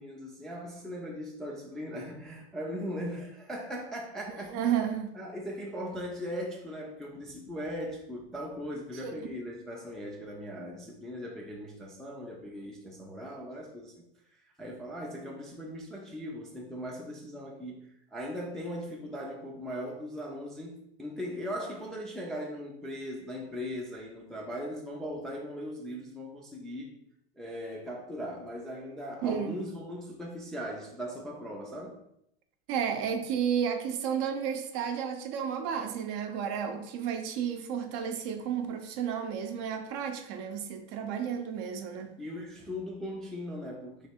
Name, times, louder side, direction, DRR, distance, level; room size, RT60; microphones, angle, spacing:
voice 1, 0.0-4.5 5.1-14.0 14.6-26.9 27.4-32.0 42.2-44.1, equal, ahead, -2 dB, 0.3 m, -39 dB
voice 2, 4.5-5.1 9.0-9.1 29.2-29.6 32.7-42.1, right 8 dB, 55° right, 6 dB, 0.6 m, -32 dB
3.2 x 2.4 x 4.3 m, 0.78 s
supercardioid pair, 120°, 34 cm